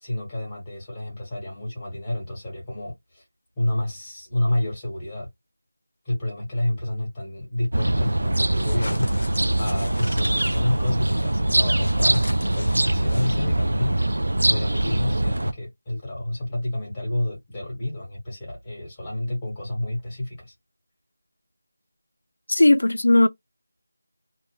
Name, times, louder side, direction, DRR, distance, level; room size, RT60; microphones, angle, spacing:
voice 1, 0.0-3.2 3.6-5.3 6.0-9.1 9.6-12.3 12.5-14.0 14.4-20.5, left 1 dB, 10° left, 1.2 m, -29 dB
sound 1, 7.7-15.5, right 1 dB, 80° right, 0.3 m, -23 dB
sound 2, 8.5-13.6, left 1 dB, 60° left, 0.8 m, -39 dB
voice 2, 22.5-23.3, left 2 dB, 80° left, 0.3 m, -17 dB
2.6 x 2.0 x 2.8 m
figure-of-eight pair, 175°, 0 cm